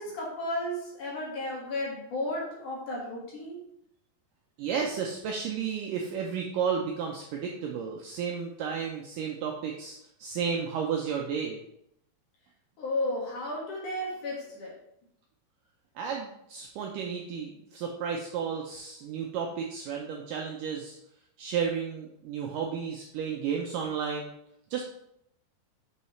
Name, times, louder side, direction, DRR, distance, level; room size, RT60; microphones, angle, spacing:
voice 1, 0.0-3.6 12.8-14.7, left 1 dB, 60° left, -4 dB, 2.9 m, -33 dB
voice 2, 4.6-11.6 16.0-21.0 21.4-24.3 24.7-24.8, right 6 dB, 85° right, 1 dB, 1.9 m, -32 dB
7.2 x 5.6 x 3.1 m, 0.76 s
omnidirectional pair, 4.6 m